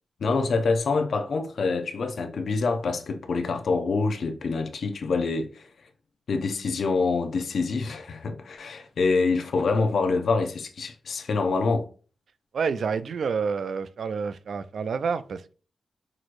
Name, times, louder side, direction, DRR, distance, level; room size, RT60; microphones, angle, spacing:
voice 1, 0.2-5.7 6.3-11.9, left 4 dB, 75° left, 0.7 m, -26 dB
voice 2, 12.5-15.5, right 5 dB, 75° right, 0.3 m, -28 dB
6.0 x 3.0 x 2.5 m
cardioid pair, 70°, 0 cm